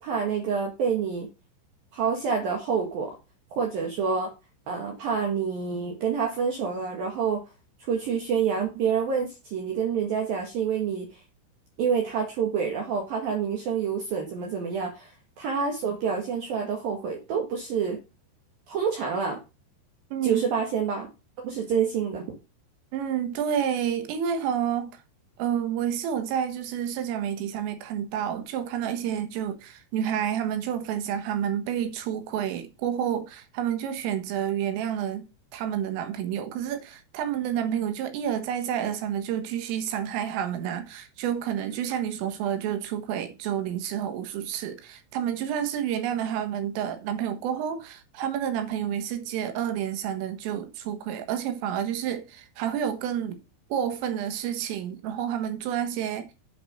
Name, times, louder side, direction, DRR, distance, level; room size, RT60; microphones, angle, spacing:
voice 1, 0.0-1.3 1.9-3.2 3.5-4.3 4.7-7.4 7.8-11.2 11.8-15.1 15.4-18.0 18.7-19.4 20.2-21.1 21.4-22.4, right 6 dB, 60° right, 2.7 m, -27 dB
voice 2, 20.1-20.4 22.9-25.0 25.4-53.4 53.7-56.3, right 9 dB, 85° right, 4.0 m, -29 dB
8.0 x 6.1 x 6.5 m
omnidirectional pair, 5.7 m